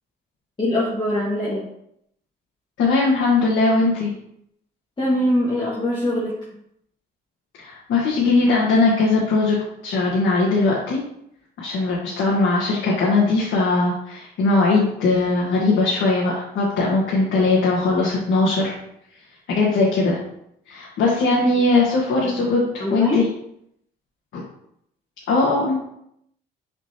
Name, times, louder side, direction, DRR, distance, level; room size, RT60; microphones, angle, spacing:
voice 1, 0.6-1.7 5.0-6.4 21.3-21.4 22.2-22.5 22.8-23.3, left 1 dB, 25° left, -7 dB, 1.8 m, -23 dB
voice 2, 2.8-4.1 7.6-9.6 9.8-11.0 11.6-18.7 19.5-20.2 20.7-23.2 24.3-24.4 25.3-25.8, left 3 dB, 80° left, -5 dB, 1.6 m, -20 dB
6.5 x 5.2 x 2.9 m, 0.74 s
cardioid pair, 90°, 20 cm